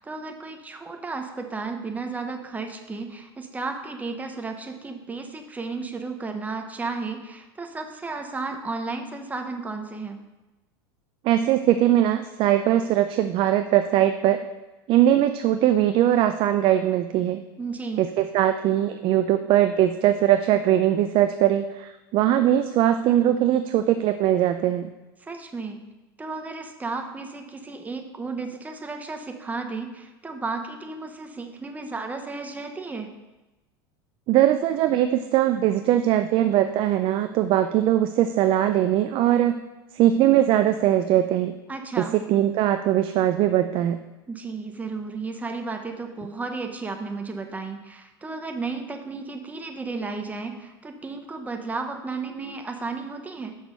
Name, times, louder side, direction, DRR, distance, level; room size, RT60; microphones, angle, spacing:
voice 1, 0.0-10.2 17.6-18.0 25.2-25.8 26.2-33.1 41.7-42.2 44.3-53.6, right 3 dB, 10° right, 4 dB, 1.0 m, -33 dB
voice 2, 11.2-14.4 14.9-17.4 18.0-24.9 34.3-39.6 40.0-41.6 42.0-44.0, right 12 dB, 45° right, 8 dB, 0.4 m, -21 dB
6.3 x 6.0 x 5.3 m, 1.1 s
hypercardioid pair, 105°, 12 cm